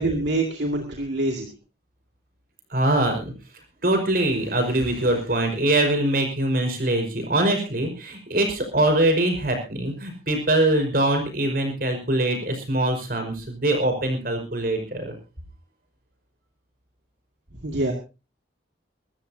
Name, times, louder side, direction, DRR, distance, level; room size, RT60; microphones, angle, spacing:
voice 1, 0.0-1.5 17.6-17.9, right 2 dB, 65° right, 2 dB, 2.3 m, -25 dB
voice 2, 2.7-3.3 3.8-15.1, right 1 dB, 50° right, 4 dB, 5.2 m, -23 dB
24.0 x 13.5 x 2.8 m, 0.30 s
head